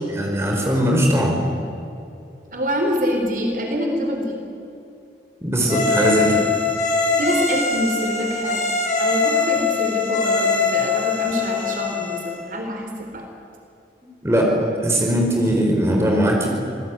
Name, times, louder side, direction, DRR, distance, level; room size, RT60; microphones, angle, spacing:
voice 1, 0.1-1.4 5.4-6.4 14.2-16.5, equal, 15° right, 0 dB, 4.8 m, -19 dB
voice 2, 2.5-4.4 7.2-8.7 9.0-13.2, equal, 50° right, 2 dB, 4.2 m, -25 dB
sound 1, 5.7-12.4, left 4 dB, 45° left, 5.4 m, -22 dB
27.0 x 20.0 x 9.6 m, 2.7 s
head